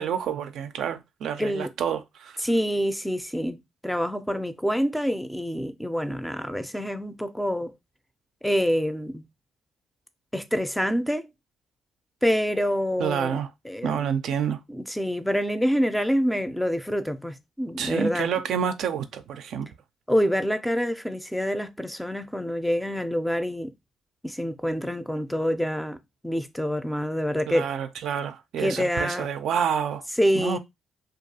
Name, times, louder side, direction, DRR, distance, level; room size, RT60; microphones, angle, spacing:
voice 1, 0.0-2.4 13.0-13.5 13.8-14.6 17.8-19.7 27.5-30.0 30.3-30.6, right 8 dB, 70° right, 0.3 m, -28 dB
voice 2, 1.4-1.7 2.4-7.7 8.4-9.2 10.3-11.3 12.2-13.4 13.6-14.1 14.7-18.3 20.1-23.7 24.2-27.7 28.6-29.3 30.2-30.6, equal, 5° left, 0.4 m, -26 dB
2.3 x 2.3 x 2.7 m
supercardioid pair, 60°, 0 cm